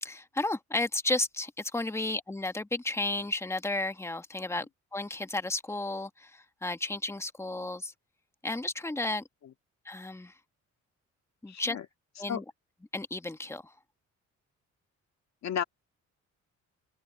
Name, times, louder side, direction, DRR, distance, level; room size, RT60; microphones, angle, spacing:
voice 1, 0.0-4.6 4.9-7.9 8.4-9.2 9.8-10.3 11.4-11.8 12.2-12.4 12.9-13.7, left 2 dB, 10° left, 1.4 m, -33 dB
voice 2, 11.5-11.9 12.3-12.4 15.4-15.6, left 8 dB, 65° left, 2.2 m, -33 dB
cardioid pair, 90°, 30 cm